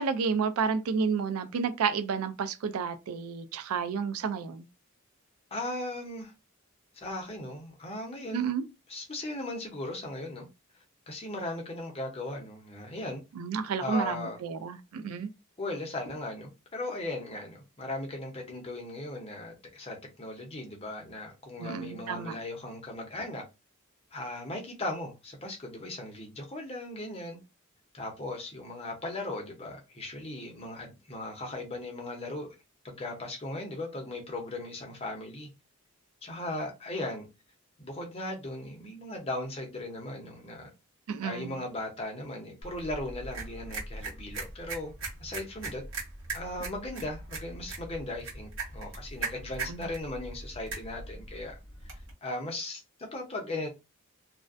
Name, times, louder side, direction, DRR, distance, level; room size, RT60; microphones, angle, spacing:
voice 1, 0.0-4.6 8.3-8.6 13.4-15.3 21.6-22.4 41.1-41.6 49.7-49.9, right 5 dB, 85° right, 0.4 m, -31 dB
voice 2, 5.5-6.3 6.9-8.5 8.9-10.5 11.1-13.2 13.8-14.4 15.6-23.4 24.1-27.4 27.9-32.6 32.8-35.5 36.2-37.3 37.8-40.7 41.2-44.9 45.2-45.8 46.3-51.6 51.8-53.7, left 2 dB, 25° left, 0.6 m, -37 dB
sound 1, 42.6-52.1, right 3 dB, 60° right, 1.0 m, -40 dB
2.3 x 2.1 x 2.4 m
head